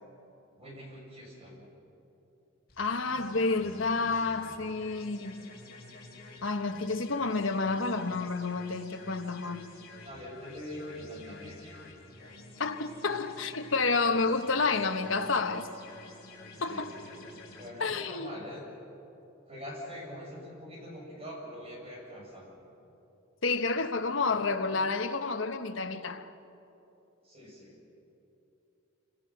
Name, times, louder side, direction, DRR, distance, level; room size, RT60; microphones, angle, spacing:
voice 1, 0.6-1.7 10.0-11.9 16.7-17.1 17.6-18.6 19.4-22.5 27.2-27.9, equal, 30° right, 6.8 m, -44 dB
sound 1, 2.7-17.7, left 3 dB, 50° left, 4.8 m, -50 dB
voice 2, 2.8-5.5 6.4-9.7 12.6-15.7 16.6-17.0 17.8-18.3 23.4-26.3, left 3 dB, 70° left, 1.2 m, -30 dB
27.5 x 26.5 x 6.0 m
head